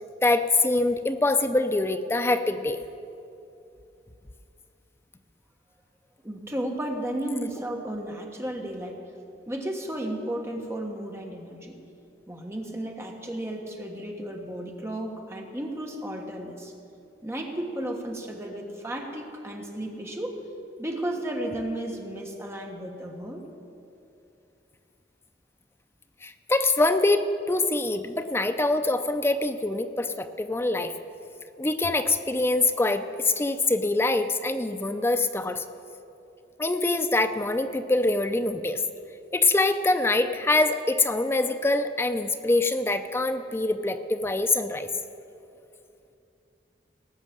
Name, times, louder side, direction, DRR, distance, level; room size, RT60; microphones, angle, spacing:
voice 1, 0.2-2.8 26.2-30.9 31.6-35.6 36.6-38.8 39.3-44.9, left 2 dB, 15° left, 8 dB, 0.4 m, -24 dB
voice 2, 6.2-9.0 9.5-11.8 12.3-16.7 17.2-20.3 20.8-23.4, right 1 dB, 15° right, 2 dB, 1.3 m, -33 dB
18.0 x 6.4 x 7.4 m, 2.6 s
head